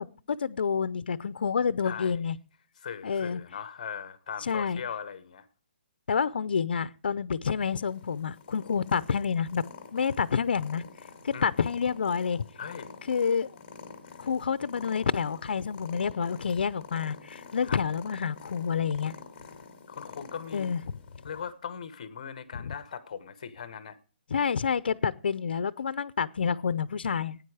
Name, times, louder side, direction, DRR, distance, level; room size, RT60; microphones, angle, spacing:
voice 1, 0.0-2.4 3.0-3.4 4.4-4.8 6.1-9.6 9.9-10.8 11.2-12.4 13.1-13.5 14.2-19.1 20.5-20.8 22.5-22.7 24.3-27.4, left 6 dB, 65° left, 0.6 m, -28 dB
voice 2, 1.8-2.2 2.8-5.5 11.3-11.5 12.6-13.0 17.6-17.8 19.9-20.7 21.2-24.0, left 7 dB, 40° left, 1.0 m, -39 dB
Purr, 7.6-21.5, left 5 dB, 25° left, 1.9 m, -48 dB
15.5 x 9.4 x 4.8 m
hypercardioid pair, 175°, 6 cm